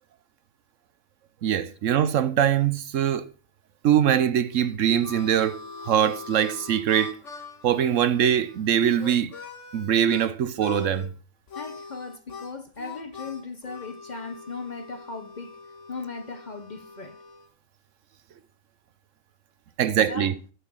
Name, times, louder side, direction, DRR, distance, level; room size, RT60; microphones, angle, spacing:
voice 1, 1.4-3.3 3.8-5.6 5.8-7.2 7.6-9.3 9.7-11.1 19.8-20.3, right 9 dB, 70° right, 1.1 m, -22 dB
Harmonica, 4.5-10.3 10.6-11.1 11.5-17.5, left 5 dB, 65° left, 1.7 m, -42 dB
voice 2, 11.5-15.6 15.9-17.2 19.8-20.3, left 4 dB, 40° left, 0.7 m, -37 dB
11.0 x 5.7 x 6.3 m
omnidirectional pair, 1.4 m